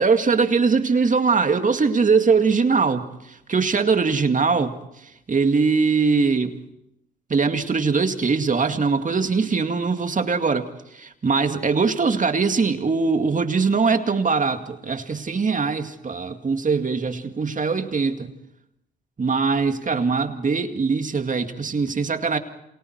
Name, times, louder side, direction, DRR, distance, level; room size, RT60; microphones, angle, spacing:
voice 1, 0.0-6.6 7.3-18.3 19.2-22.4, right 4 dB, 40° right, 7 dB, 2.3 m, -21 dB
29.0 x 27.0 x 4.7 m, 0.84 s
supercardioid pair, 55°, 21 cm